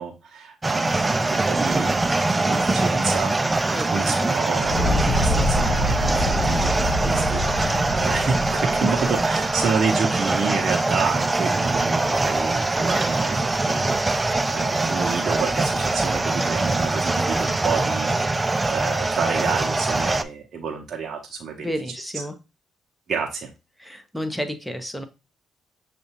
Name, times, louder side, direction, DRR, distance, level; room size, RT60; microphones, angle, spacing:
voice 1, 0.0-2.0 2.4-21.7 23.1-23.5, right 5 dB, 50° right, 0 dB, 0.8 m, -29 dB
sound 1, 0.6-20.2, right 2 dB, 20° right, 0.4 m, -23 dB
voice 2, 3.7-4.3 8.8-8.9 21.6-22.3 23.8-25.0, equal, ahead, 7 dB, 1.0 m, -30 dB
Fire, 4.6-9.7, left 1 dB, 55° left, 1.2 m, -26 dB
6.6 x 2.5 x 3.0 m, 0.28 s
supercardioid pair, 65°, 0 cm